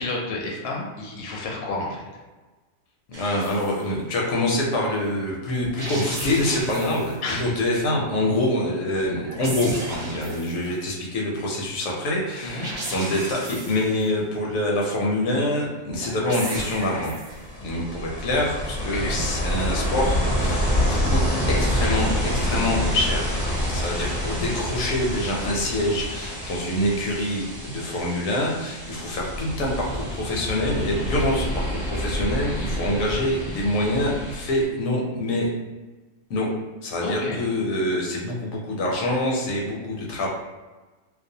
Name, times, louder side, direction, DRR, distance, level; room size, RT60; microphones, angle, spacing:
voice 1, 0.0-2.0 7.2-7.5 12.4-12.7 18.9-19.2 37.0-37.4, left 2 dB, 60° left, -2 dB, 0.7 m, -30 dB
voice 2, 3.1-17.1 17.6-23.3 23.7-35.5 36.3-36.5 36.8-40.3, left 1 dB, 80° left, -2 dB, 1.0 m, -25 dB
sound 1, 3.1-3.8 5.6-7.2 9.0-10.7 12.5-14.1 15.9-17.5, right 1 dB, 70° right, 0.3 m, -35 dB
Ocean, 17.3-34.6, equal, 30° right, 0.7 m, -27 dB
2.5 x 2.0 x 2.7 m, 1.2 s
omnidirectional pair, 1.4 m